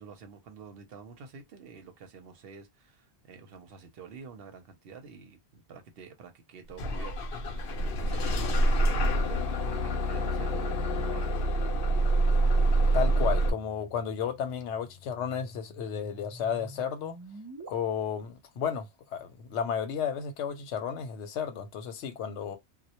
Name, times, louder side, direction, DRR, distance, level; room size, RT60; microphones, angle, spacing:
voice 1, 0.0-11.4, right 6 dB, 65° right, 0.8 m, -48 dB
Bus / Engine starting, 6.8-13.5, right 1 dB, 65° left, 0.7 m, -26 dB
sound 1, 11.7-17.7, right 2 dB, 30° right, 0.4 m, -49 dB
voice 2, 12.9-17.2 17.7-22.6, left 7 dB, 90° left, 0.9 m, -33 dB
2.1 x 2.0 x 2.8 m
omnidirectional pair, 1.1 m